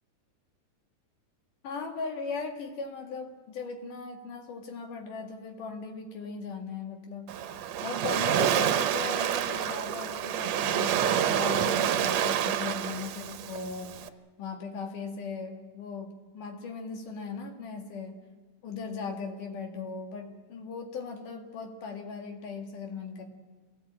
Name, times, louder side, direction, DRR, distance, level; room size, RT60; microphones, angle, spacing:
voice 1, 1.6-7.3 7.8-13.9 14.4-18.2 18.6-23.2, left 4 dB, 85° left, 3 dB, 3.7 m, -38 dB
Waves surf, 7.3-14.1, right 9 dB, 70° right, 1.9 m, -28 dB
26.5 x 18.0 x 8.8 m, 1.4 s
omnidirectional pair, 3.6 m